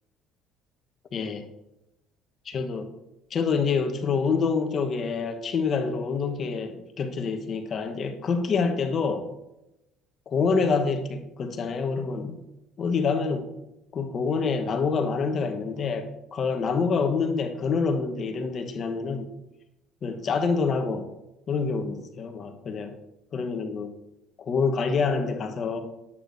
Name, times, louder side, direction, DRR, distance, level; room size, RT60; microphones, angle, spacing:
voice 1, 1.1-1.5 2.4-2.9 3.3-9.3 10.3-12.4 12.8-13.5 13.9-19.3 20.0-21.1 21.5-23.0 23.3-24.0 24.4-25.8, left 5 dB, 45° left, 7 dB, 1.0 m, -27 dB
9.9 x 8.5 x 2.6 m, 0.92 s
supercardioid pair, 85°, 0 cm